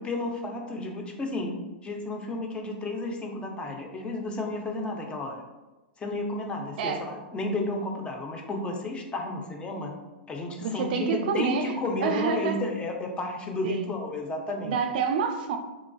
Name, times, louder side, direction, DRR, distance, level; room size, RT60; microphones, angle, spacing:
voice 1, 0.0-1.6 1.8-5.4 6.0-10.0 10.3-14.8, left 2 dB, 20° left, 2 dB, 0.4 m, -32 dB
voice 2, 10.6-11.7 12.0-12.6 13.6-13.9 14.6-15.6, right 6 dB, 60° right, 7 dB, 0.3 m, -28 dB
3.0 x 2.3 x 2.3 m, 1.1 s
hypercardioid pair, 110°, 6 cm